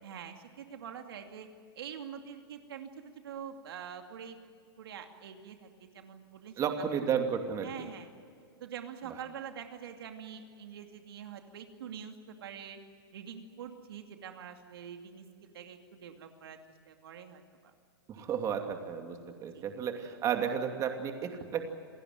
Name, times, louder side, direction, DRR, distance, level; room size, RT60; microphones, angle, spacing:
voice 1, 0.0-1.5 1.8-4.4 4.8-6.9 7.6-8.1 8.6-12.8 13.1-16.6 16.9-17.7 18.2-18.3 19.5-19.6, right 8 dB, 70° right, 5 dB, 2.6 m, -45 dB
voice 2, 6.6-7.7 18.2-21.6, right 7 dB, 25° right, 5 dB, 2.7 m, -32 dB
28.5 x 16.5 x 9.4 m, 2.3 s
hypercardioid pair, 135°, 13 cm